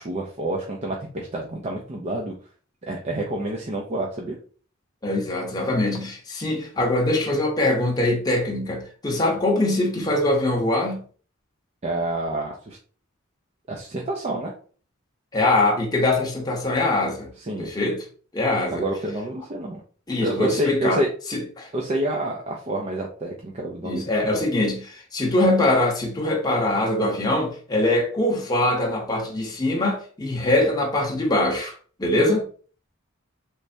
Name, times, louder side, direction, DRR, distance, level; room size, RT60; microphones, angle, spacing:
voice 1, 0.0-2.3 2.9-4.4 11.8-12.8 13.7-14.5 17.4-17.7 18.7-19.8 20.2-21.1 21.7-24.4, right 1 dB, 30° right, 0.5 m, -28 dB
voice 2, 5.0-11.0 15.3-17.3 17.6-18.0 18.3-18.8 20.1-21.0 21.3-21.7 23.8-32.4, left 1 dB, 20° left, 0.8 m, -23 dB
3.3 x 3.2 x 2.6 m
head